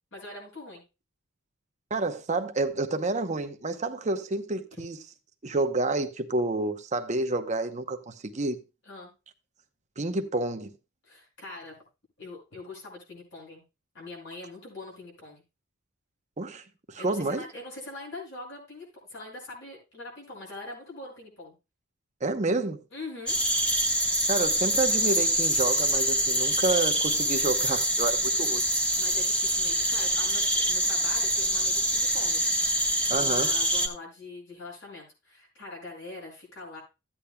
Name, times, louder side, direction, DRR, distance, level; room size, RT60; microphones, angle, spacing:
voice 1, 0.1-0.8 8.9-9.1 11.0-11.8 12.2-13.6 13.9-15.4 17.0-21.5 22.9-23.4 29.0-32.4 33.1-36.8, left 2 dB, 60° left, 5.8 m, -43 dB
voice 2, 1.9-5.0 5.4-8.6 10.0-10.7 16.4-17.4 22.2-22.8 24.3-28.6 33.1-33.5, right 2 dB, 35° right, 0.8 m, -29 dB
sound 1, 23.3-33.9, right 1 dB, 5° left, 1.2 m, -25 dB
14.5 x 8.6 x 2.3 m
head